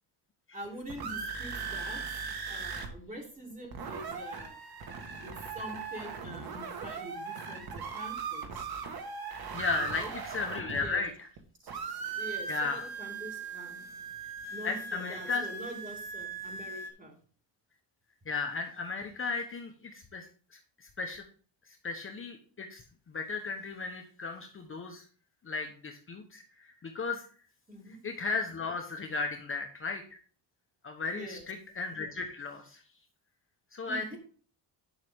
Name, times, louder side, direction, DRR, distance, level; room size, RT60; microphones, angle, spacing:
voice 1, 0.5-2.0 2.5-4.7 5.2-8.7 9.8-10.1 10.7-11.0 11.6-13.8 14.5-17.2 27.7-28.0 31.1-31.5 33.9-34.2, right 1 dB, 20° right, -1 dB, 3.5 m, -45 dB
sound 1, 0.6-2.9 3.2-3.3 3.5-11.4 11.7-16.9, right 5 dB, 55° right, 1.7 m, -39 dB
voice 2, 9.5-11.3 12.5-12.9 14.6-15.5 18.3-21.2 21.6-25.0 25.4-27.3 28.0-30.2 30.8-32.8 33.7-34.2, left 4 dB, 30° left, 3 dB, 1.1 m, -35 dB
10.5 x 5.9 x 3.6 m, 0.42 s
cardioid pair, 125°, 43 cm